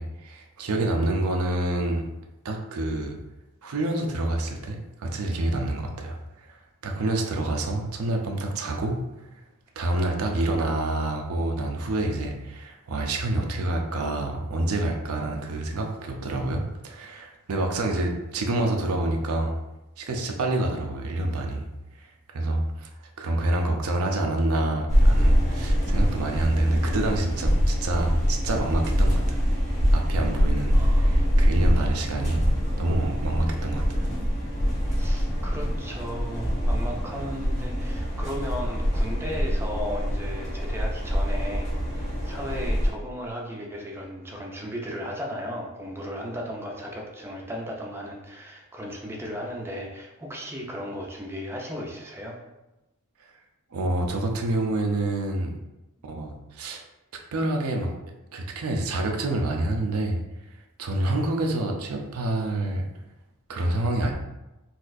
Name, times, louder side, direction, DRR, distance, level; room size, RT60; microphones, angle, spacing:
voice 1, 0.0-2.0 2.4-3.2 3.6-9.0 9.8-19.5 20.0-21.7 22.0-22.1 22.3-22.9 23.2-29.4 29.9-32.5 32.8-34.0 53.7-55.5 56.0-56.8 57.1-57.9 58.3-60.2 60.8-62.8 63.5-64.1, right 2 dB, 85° right, 2 dB, 0.5 m, -27 dB
sound 1, 24.9-42.9, equal, 35° left, 1.1 m, -24 dB
voice 2, 30.7-31.3 35.0-52.4, equal, 10° right, -1 dB, 0.5 m, -35 dB
4.0 x 2.4 x 2.5 m, 0.99 s
head